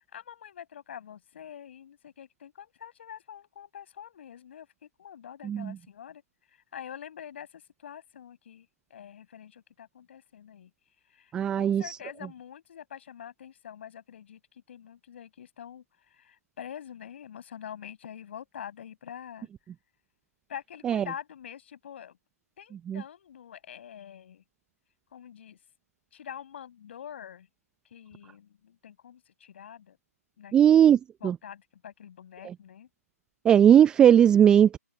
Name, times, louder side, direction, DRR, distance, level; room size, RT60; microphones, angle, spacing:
voice 1, 0.0-6.2 6.5-10.7 11.1-19.5 20.5-22.2 22.6-24.4 25.1-25.6 26.1-27.5 27.9-30.0 30.4-30.8 31.2-32.9, left 9 dB, 45° left, 6.7 m, -45 dB
voice 2, 11.3-12.0 20.8-21.0 22.9-23.0 30.5-31.0 31.2-31.3 33.4-34.8, right 9 dB, 10° right, 0.5 m, -18 dB
figure-of-eight pair, 145°, 9 cm